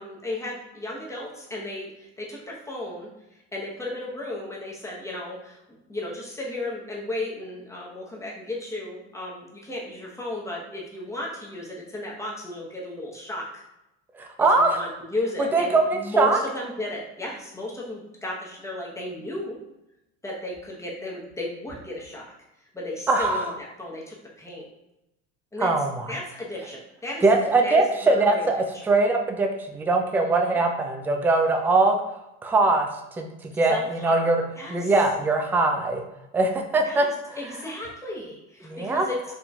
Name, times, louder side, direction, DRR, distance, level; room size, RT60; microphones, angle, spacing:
voice 1, 0.0-13.6 14.5-19.6 20.2-22.3 22.7-24.7 25.5-25.7 26.1-27.2 27.6-28.5 28.7-28.8 30.2-30.6 33.7-34.9 36.8-39.2, left 1 dB, 10° left, -3 dB, 1.0 m, -34 dB
voice 2, 14.1-14.8 15.4-16.4 23.1-23.4 25.6-26.1 27.2-28.6 28.9-32.0 32.4-32.9 33.2-34.4 34.7-36.0 36.3-37.4 38.6-39.0, right 3 dB, 5° right, 4 dB, 0.3 m, -22 dB
4.2 x 2.8 x 2.3 m, 0.89 s
supercardioid pair, 100°, 31 cm